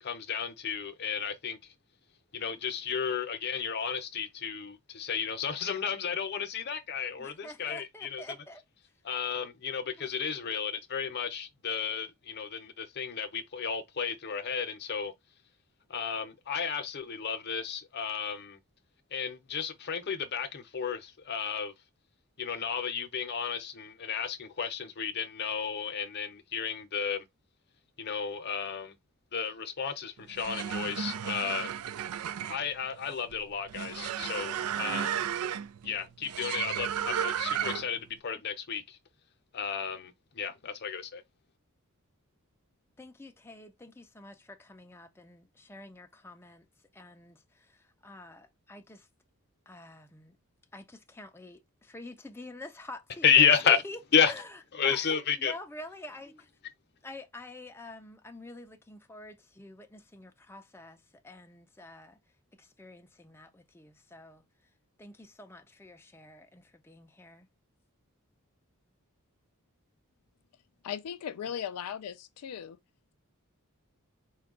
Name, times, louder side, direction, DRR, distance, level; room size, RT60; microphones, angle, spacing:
voice 1, 0.0-1.6 2.3-8.2 9.0-15.1 15.9-18.6 19.1-21.7 22.4-27.2 28.0-28.9 29.3-31.7 32.5-35.2 35.8-39.0 39.5-41.2 53.2-53.8 54.1-54.3 54.7-55.5, left 7 dB, 50° left, 0.7 m, -32 dB
voice 2, 7.2-8.6 10.2-10.5 43.0-46.7 46.9-49.1 49.7-50.4 50.7-54.0 54.2-54.6 54.8-56.5 57.0-62.2 62.6-64.4 65.0-67.5, left 2 dB, 10° left, 0.4 m, -47 dB
sound 1, 30.2-38.0, right 9 dB, 75° right, 0.4 m, -34 dB
voice 3, 70.8-72.8, left 8 dB, 85° left, 0.4 m, -37 dB
4.6 x 2.3 x 3.7 m
head